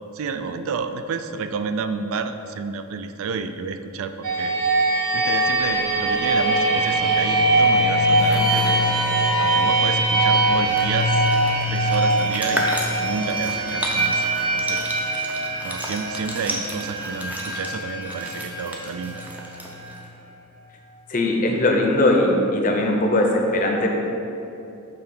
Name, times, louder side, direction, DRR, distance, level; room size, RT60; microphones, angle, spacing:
voice 1, 0.1-4.5 5.1-8.9 9.4-11.2 11.7-12.7 13.0-14.8 15.6-19.2, right 5 dB, 70° right, 9 dB, 0.3 m, -30 dB
sound 1, 4.2-19.9, right 1 dB, 90° right, 0.8 m, -22 dB
sound 2, 8.1-8.8 10.2-10.3 10.5-20.1, equal, 5° right, 0.5 m, -33 dB
sound 3, 8.2-12.8, equal, 40° right, 1.0 m, -42 dB
voice 2, 21.1-23.9, left 1 dB, 35° left, 1 dB, 0.6 m, -20 dB
6.7 x 3.4 x 5.3 m, 2.9 s
head